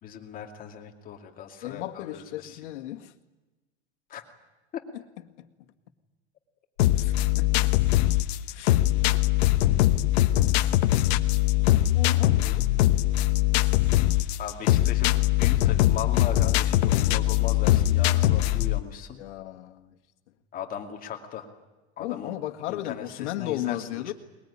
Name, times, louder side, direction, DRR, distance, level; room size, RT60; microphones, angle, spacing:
voice 1, 0.0-2.6 4.1-4.2 8.9-9.0 14.4-19.2 20.5-21.5 22.0-22.3 22.7-24.1, left 8 dB, 25° left, 2.5 m, -38 dB
voice 2, 1.6-3.1 5.4-5.5 6.9-7.7 8.5-8.9 11.9-12.7 19.2-19.9 22.0-24.1, left 14 dB, 85° left, 2.0 m, -35 dB
sound 1, 6.8-18.8, left 15 dB, 65° left, 1.2 m, -22 dB
22.0 x 21.5 x 10.0 m
supercardioid pair, 165°, 34 cm